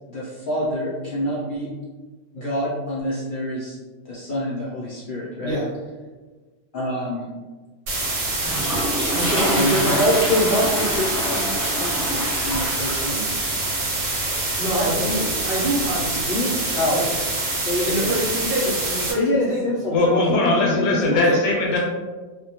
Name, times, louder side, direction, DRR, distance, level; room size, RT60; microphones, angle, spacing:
voice 1, 0.1-1.7 2.3-3.8 4.1-5.6 6.7-7.3 9.5-13.3 14.6-15.1 16.0-17.0 17.5-18.1 19.2-20.2 20.6-21.2, equal, 60° left, -8 dB, 0.5 m, -26 dB
Toilet flush, 7.9-16.2, equal, ahead, 1.2 m, -28 dB
sound 1, 7.9-19.1, right 2 dB, 80° right, 1.0 m, -26 dB
voice 2, 9.1-10.1 14.6-16.1 16.4-17.1 17.8-19.7 21.1-21.4, right 1 dB, 55° right, -5 dB, 0.8 m, -26 dB
voice 3, 19.9-21.8, left 2 dB, 80° left, -2 dB, 0.9 m, -19 dB
2.1 x 2.0 x 2.8 m, 1.3 s
omnidirectional pair, 1.3 m